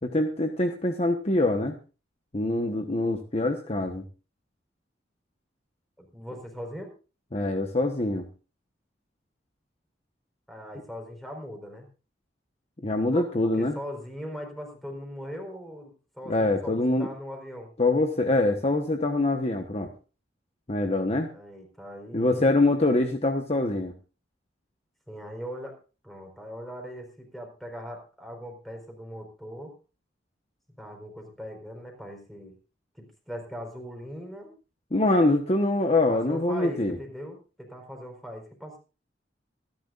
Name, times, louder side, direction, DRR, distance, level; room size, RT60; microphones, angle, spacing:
voice 1, 0.0-1.8 2.3-4.0 7.3-8.3 12.8-13.8 16.3-17.1 17.8-19.9 20.7-21.3 22.1-23.9 34.9-37.0, left 2 dB, 35° left, 5 dB, 1.1 m, -24 dB
voice 2, 6.0-6.9 10.5-11.9 13.1-17.7 21.3-22.8 25.1-25.8 26.0-29.7 30.8-32.6 32.9-34.5 36.1-38.8, equal, ahead, 3 dB, 4.4 m, -40 dB
26.0 x 10.5 x 2.5 m, 0.34 s
head